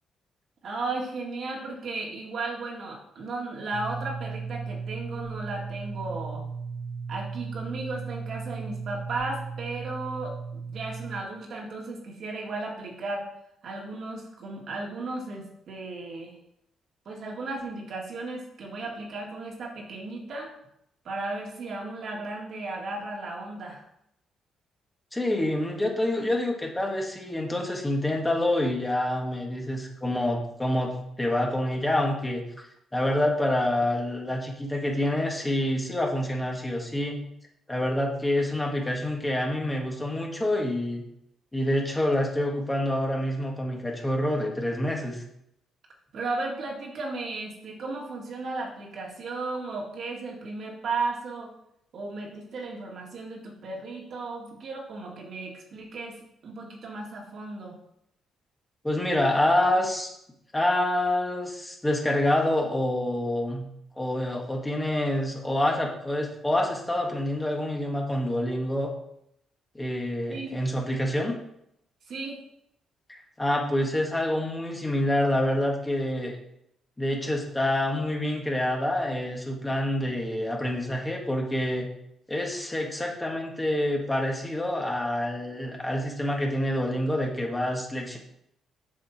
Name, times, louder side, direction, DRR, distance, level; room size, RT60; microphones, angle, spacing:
voice 1, 0.6-6.4 7.1-13.3 13.6-16.4 17.1-20.5 21.0-23.8 46.1-51.5 51.9-56.2 56.4-57.8 70.3-70.6 72.1-72.4, right 3 dB, 60° right, -1 dB, 2.2 m, -35 dB
sound 1, 3.7-11.2, right 5 dB, 45° right, 0.6 m, -36 dB
voice 2, 25.1-32.7 32.9-37.2 37.7-41.0 41.5-45.2 58.8-60.1 60.5-63.7 64.0-68.9 69.8-71.3 73.1-76.4 77.0-81.9 82.3-88.2, left 1 dB, 15° left, 0 dB, 1.9 m, -27 dB
7.6 x 6.3 x 4.4 m, 0.76 s
cardioid pair, 90°, 0 cm